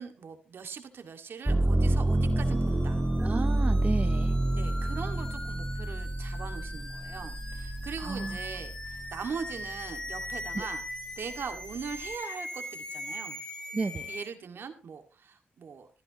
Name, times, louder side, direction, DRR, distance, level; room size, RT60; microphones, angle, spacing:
voice 1, 0.0-3.0 4.5-10.8 11.2-13.4 14.1-15.9, right 6 dB, 70° right, 6 dB, 2.1 m, -41 dB
sound 1, 1.5-9.3 9.8-10.6, right 1 dB, 10° right, 1.8 m, -28 dB
sound 2, 2.0-14.3, left 1 dB, 20° left, 3.2 m, -41 dB
voice 2, 3.2-4.4 8.0-8.4 10.5-10.7 13.7-14.2, right 3 dB, 35° right, 10 dB, 0.8 m, -33 dB
16.0 x 14.0 x 3.0 m, 0.34 s
cardioid pair, 65°, 4 cm